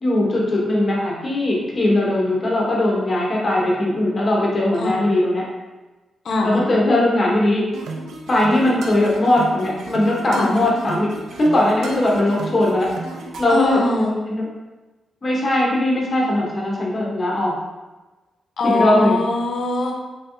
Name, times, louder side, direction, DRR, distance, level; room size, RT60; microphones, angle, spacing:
voice 1, 0.0-5.4 6.4-7.6 8.3-11.1 11.4-12.9 13.4-14.4 15.2-17.5 18.6-19.2, left 1 dB, 35° left, -4 dB, 1.0 m, -19 dB
voice 2, 6.2-6.6 10.3-10.5 13.5-14.1 18.6-19.9, left 2 dB, 65° left, 1 dB, 0.6 m, -21 dB
sound 1, 7.7-13.7, right 3 dB, 85° right, 0.4 m, -34 dB
3.3 x 3.3 x 2.7 m, 1.2 s
cardioid pair, 95°, 0 cm